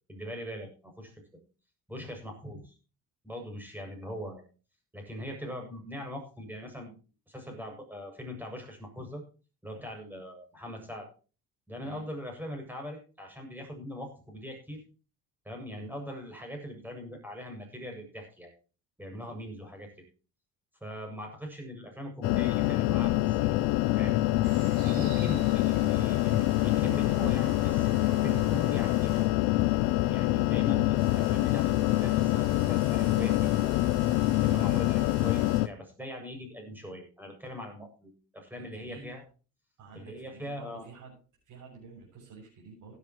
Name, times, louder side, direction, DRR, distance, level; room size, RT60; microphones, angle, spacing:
voice 1, 0.1-1.1 1.9-2.7 3.2-4.4 4.9-6.9 7.3-9.2 9.6-11.1 11.7-14.8 15.4-18.5 19.0-19.9 20.8-23.7 24.0-24.2 24.8-29.2 30.1-33.8 34.3-39.2 39.9-40.9, equal, 5° right, 3 dB, 7.5 m, -41 dB
sound 1, 22.2-35.7, left 17 dB, 85° left, 0.7 m, -25 dB
sound 2, 24.4-35.6, right 6 dB, 80° right, 6.9 m, -51 dB
voice 2, 38.6-39.1 39.8-41.2 41.4-43.0, right 4 dB, 60° right, -4 dB, 7.3 m, -50 dB
17.0 x 11.0 x 3.1 m, 0.35 s
cardioid pair, 100°, 34 cm